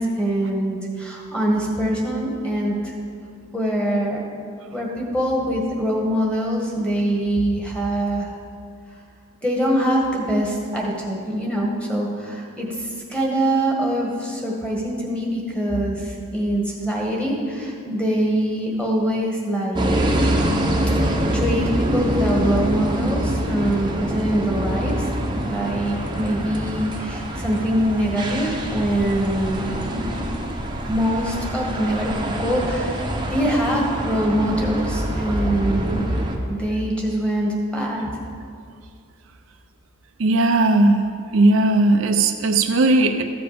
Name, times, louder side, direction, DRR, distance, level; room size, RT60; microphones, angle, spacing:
voice 1, 0.0-2.9 3.5-4.2 4.7-8.4 9.4-20.3 21.0-30.5 30.9-32.1 32.4-36.1 36.4-38.1, right 1 dB, 5° left, -2 dB, 1.7 m, -24 dB
sound 1, 19.8-36.4, right 1 dB, 20° right, 0.9 m, -25 dB
voice 2, 40.2-41.0 41.3-43.2, right 2 dB, 65° right, 6 dB, 0.6 m, -17 dB
14.0 x 6.9 x 5.1 m, 2.3 s
head